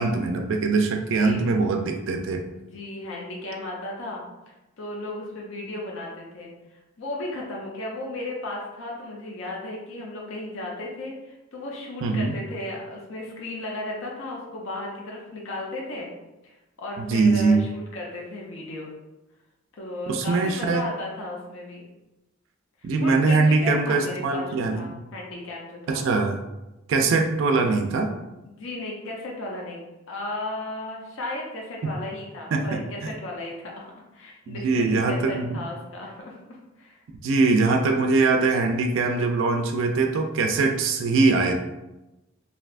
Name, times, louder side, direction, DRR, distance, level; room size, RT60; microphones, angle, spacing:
voice 1, 0.0-2.4 12.0-12.3 17.0-17.6 20.1-20.9 22.8-24.9 25.9-26.4 26.9-28.1 31.8-31.9 32.5-33.1 34.5-35.5 37.2-41.6, right 3 dB, 65° right, 4 dB, 0.3 m, -22 dB
voice 2, 1.1-1.5 2.7-4.2 4.8-16.1 16.4-18.9 19.8-21.8 22.8-26.0 28.5-29.8 30.1-37.0, left 2 dB, 65° left, -2 dB, 0.6 m, -35 dB
3.2 x 2.7 x 2.4 m, 1.0 s
head